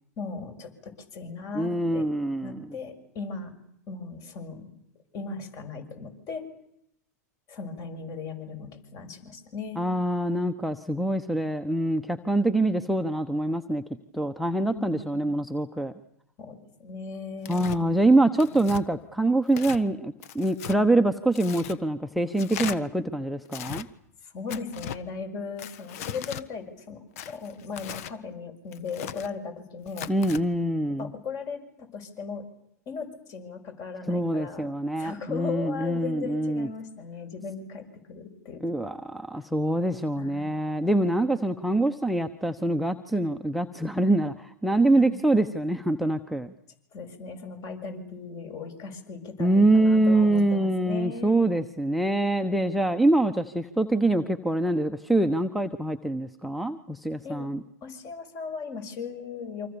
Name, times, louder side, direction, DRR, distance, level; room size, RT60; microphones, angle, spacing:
voice 1, 0.2-2.1 2.4-3.5 3.9-4.7 5.1-6.4 7.5-9.8 14.8-15.3 16.4-18.0 18.5-18.6 24.2-30.1 31.0-32.4 32.9-34.7 35.0-38.9 40.2-40.5 44.9-45.2 46.9-51.4 52.5-52.9 57.2-57.5 57.8-59.7, left 5 dB, 40° left, 8 dB, 6.6 m, -37 dB
voice 2, 1.5-2.7 9.8-13.8 14.1-15.9 17.5-23.9 30.1-31.1 34.1-36.7 38.6-46.5 49.4-57.6, right 1 dB, ahead, 13 dB, 1.0 m, -25 dB
Tearing, 17.4-17.8 18.4-18.8 19.5-19.8 20.2-20.8 21.3-21.8 22.4-22.8 23.5-23.9 24.5-25.0 25.6-26.4 27.2-28.1 28.7-29.3 29.9-30.4, left 10 dB, 60° left, 1.3 m, -38 dB
28.0 x 26.0 x 7.0 m, 0.74 s
hypercardioid pair, 105°, 9 cm